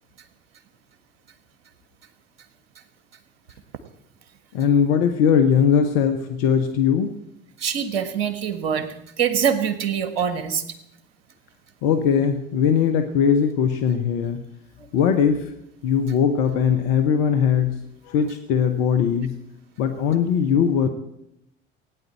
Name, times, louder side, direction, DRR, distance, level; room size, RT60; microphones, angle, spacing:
voice 1, 4.5-7.1 11.8-14.4 14.9-15.4 15.8-17.7 18.1-19.4 19.8-20.9, left 7 dB, 60° left, 7 dB, 1.2 m, -20 dB
voice 2, 7.6-10.6, right 8 dB, 70° right, 10 dB, 1.6 m, -24 dB
17.0 x 9.7 x 7.8 m, 0.83 s
figure-of-eight pair, 60°, 31 cm